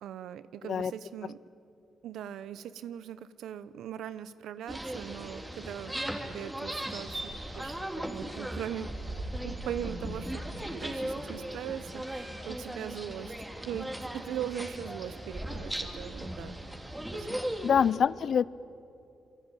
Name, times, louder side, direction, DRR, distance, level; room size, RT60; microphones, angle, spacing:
voice 1, 0.0-1.4 2.0-8.9 9.4-16.6 17.1-17.4, right 10 dB, 90° right, 15 dB, 0.8 m, -40 dB
sound 1, 4.7-17.9, right 1 dB, 10° right, 3.3 m, -37 dB
voice 2, 17.6-18.5, left 7 dB, 65° left, 20 dB, 0.6 m, -25 dB
27.5 x 23.0 x 9.0 m, 2.7 s
cardioid pair, 75°, 0 cm